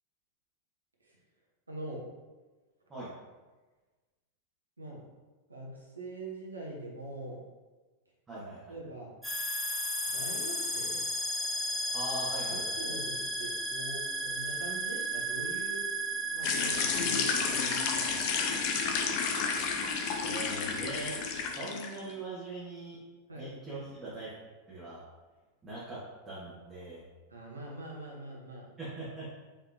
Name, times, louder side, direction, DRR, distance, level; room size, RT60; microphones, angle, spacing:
voice 1, 1.7-2.0 4.8-5.0 5.5-7.4 8.7-9.1 10.1-11.0 12.4-15.8 16.3-18.7 23.3-23.5 27.3-28.7, right 1 dB, 80° right, -3 dB, 1.0 m, -43 dB
voice 2, 8.3-8.7 11.9-12.8 20.2-21.1 21.5-23.0 23.3-24.3 24.7-25.0 25.6-27.0 28.8-29.3, right 2 dB, 15° right, -10 dB, 1.3 m, -41 dB
sound 1, 9.2-21.5, right 2 dB, ahead, 1.2 m, -36 dB
sound 2, 9.9-16.8, left 3 dB, 20° left, 0.9 m, -42 dB
sound 3, 16.4-22.0, left 6 dB, 45° left, 0.5 m, -31 dB
4.4 x 3.6 x 2.7 m, 1.3 s
figure-of-eight pair, 90°, 0 cm